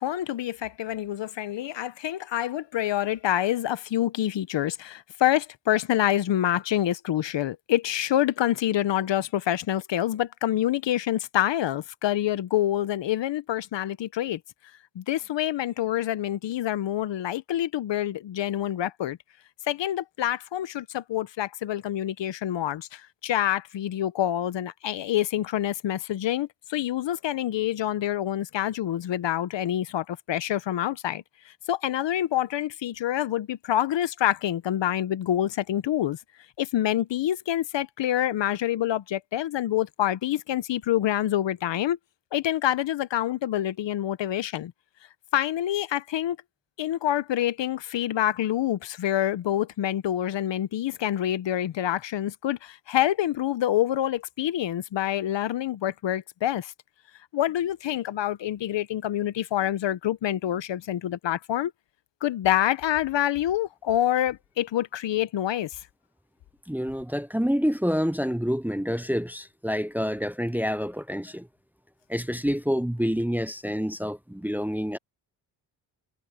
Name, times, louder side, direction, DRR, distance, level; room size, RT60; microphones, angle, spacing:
voice 1, 0.0-14.4 14.9-19.2 19.7-31.2 31.7-36.2 36.6-42.0 42.3-44.7 45.3-46.4 46.8-56.7 57.3-61.7 62.2-65.7, left 12 dB, 70° left, 1.0 m, -27 dB
voice 2, 66.7-71.5 72.1-75.0, equal, 5° right, 0.8 m, -27 dB
cardioid pair, 65°, 45 cm